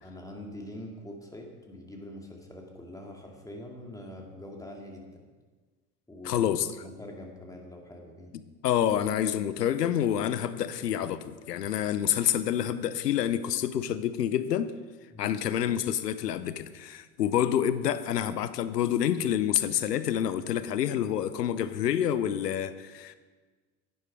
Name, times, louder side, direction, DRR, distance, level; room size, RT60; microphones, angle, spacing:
voice 1, 0.0-5.2 6.1-6.5 6.8-8.3 15.1-15.4, left 1 dB, 5° left, 0 dB, 2.6 m, -44 dB
voice 2, 6.2-6.7 8.6-14.7 15.2-23.1, left 10 dB, 80° left, 13 dB, 0.8 m, -28 dB
11.0 x 9.5 x 4.9 m, 1.4 s
hypercardioid pair, 70°, 47 cm